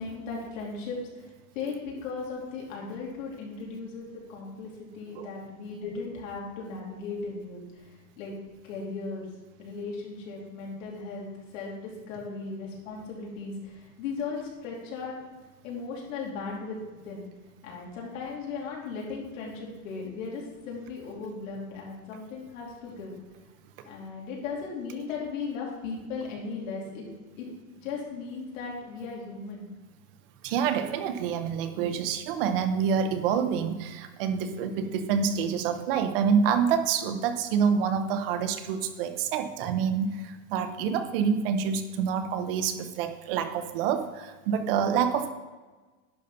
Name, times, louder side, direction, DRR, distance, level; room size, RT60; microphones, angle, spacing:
voice 1, 0.0-8.3 8.6-9.3 9.6-11.3 11.5-15.2 15.6-16.8 17.0-17.3 17.6-23.1 23.8-27.1 27.4-27.5 27.8-29.7, left 4 dB, 65° left, -3 dB, 2.9 m, -37 dB
voice 2, 30.4-45.3, right 7 dB, 40° right, 9 dB, 0.7 m, -27 dB
10.5 x 4.1 x 5.5 m, 1.3 s
supercardioid pair, 165°, 42 cm